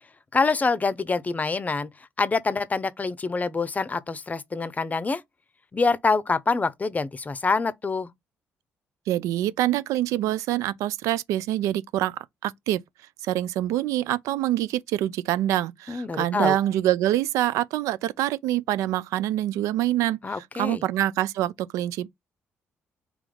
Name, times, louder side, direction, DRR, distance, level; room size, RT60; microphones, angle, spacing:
voice 1, 0.3-1.9 2.2-5.2 5.7-8.1 15.9-16.6 20.2-20.8, left 4 dB, 30° left, 0.6 m, -25 dB
voice 2, 9.1-12.8 13.2-22.1, right 13 dB, 80° right, 0.4 m, -25 dB
3.4 x 3.0 x 3.8 m
supercardioid pair, 60°, 5 cm